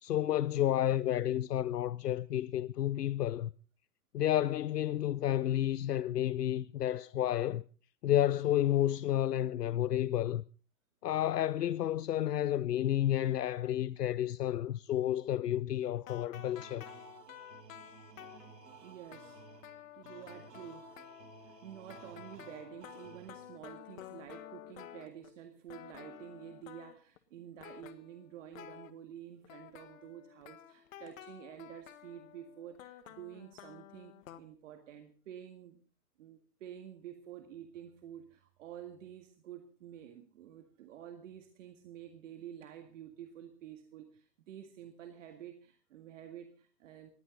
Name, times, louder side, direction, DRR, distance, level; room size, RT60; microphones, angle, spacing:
voice 1, 0.0-3.5 4.1-7.6 8.0-10.4 11.0-16.8, left 12 dB, 70° left, 0.7 m, -31 dB
sound 1, 15.9-25.4 25.7-27.2 27.6-28.9 29.4-34.4, left 12 dB, 55° left, 1.6 m, -52 dB
sound 2, 16.3-23.7, right 6 dB, 80° right, 2.5 m, -56 dB
voice 2, 18.8-19.4 19.9-20.9 21.4-35.8 36.2-47.1, right 10 dB, 50° right, 2.0 m, -50 dB
20.0 x 15.0 x 4.0 m
figure-of-eight pair, 125°, 49 cm